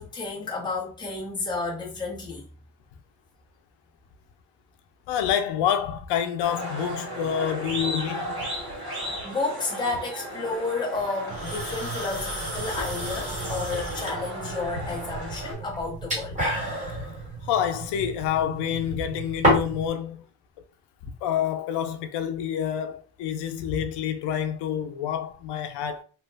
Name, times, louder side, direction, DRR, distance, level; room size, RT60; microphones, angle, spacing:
voice 1, 0.0-2.4 9.2-16.4, left 3 dB, 10° left, 0.6 m, -31 dB
voice 2, 5.1-8.5 17.4-20.3 21.2-26.0, left 9 dB, 90° left, 0.5 m, -28 dB
sound 1, 6.4-15.5, right 1 dB, 60° right, 1.6 m, -35 dB
sound 2, 11.3-19.9, equal, 20° right, 1.2 m, -30 dB
2.9 x 2.1 x 3.2 m
cardioid pair, 180°, 40 cm